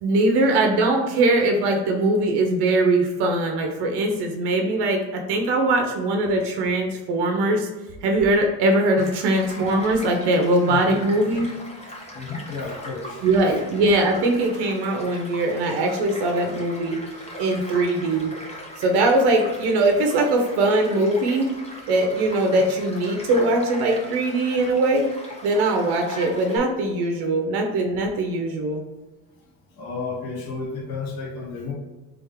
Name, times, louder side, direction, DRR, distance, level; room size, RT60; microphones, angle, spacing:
voice 1, 0.0-7.7 8.0-11.5 13.2-17.0 17.4-18.3 18.8-21.6 21.9-25.1 25.4-28.8, right 2 dB, 75° right, 3 dB, 0.9 m, -21 dB
Child speech kid speaking / Stream / Car passing by, 9.0-26.6, left 1 dB, 15° left, 1.1 m, -39 dB
voice 2, 12.1-13.2 17.6-17.7 29.7-31.7, left 4 dB, 60° left, -1 dB, 1.5 m, -32 dB
3.7 x 3.5 x 3.6 m, 1.1 s
cardioid pair, 110°, 40 cm